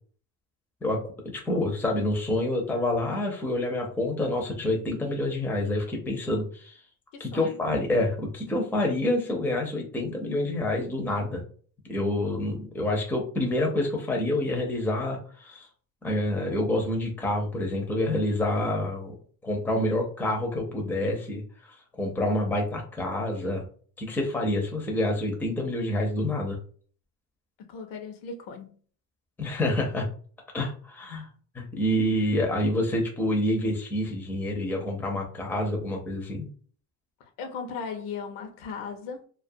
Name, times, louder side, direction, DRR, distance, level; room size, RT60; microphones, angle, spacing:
voice 1, 1.4-6.8 7.2-11.4 11.9-15.7 16.0-19.1 19.4-21.4 21.7-23.7 24.0-26.6 29.4-30.1 30.5-31.3 31.5-36.5, left 1 dB, 5° left, 0.5 m, -27 dB
voice 2, 7.1-7.6 27.6-28.8 37.2-39.2, left 5 dB, 65° left, 0.7 m, -37 dB
2.3 x 2.2 x 2.6 m
cardioid pair, 130°, 36 cm